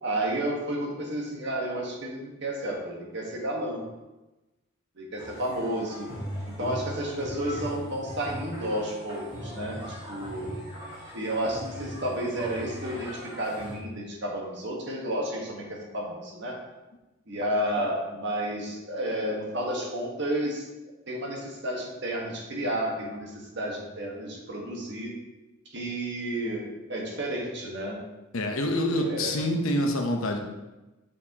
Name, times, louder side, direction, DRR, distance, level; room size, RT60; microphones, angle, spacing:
voice 1, 0.0-3.8 5.0-6.1 6.5-9.8 10.1-10.5 11.1-16.6 17.3-20.6 21.1-25.1 25.7-28.0 29.0-29.3, right 1 dB, 55° right, -2 dB, 1.4 m, -31 dB
sound 1, 5.2-13.8, equal, 20° right, 2.0 m, -39 dB
voice 2, 28.3-30.4, left 1 dB, 80° left, 3 dB, 0.9 m, -26 dB
6.6 x 5.6 x 2.9 m, 1.1 s
head